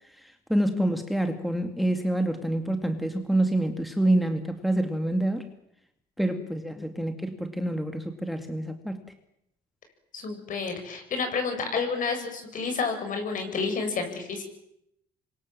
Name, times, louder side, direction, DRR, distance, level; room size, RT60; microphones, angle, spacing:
voice 1, 0.2-5.5 6.2-9.0, right 1 dB, ahead, 6 dB, 2.3 m, -27 dB
voice 2, 10.1-14.4, left 5 dB, 50° left, 6 dB, 7.7 m, -30 dB
27.5 x 24.0 x 7.6 m, 0.78 s
cardioid pair, 110°, 17 cm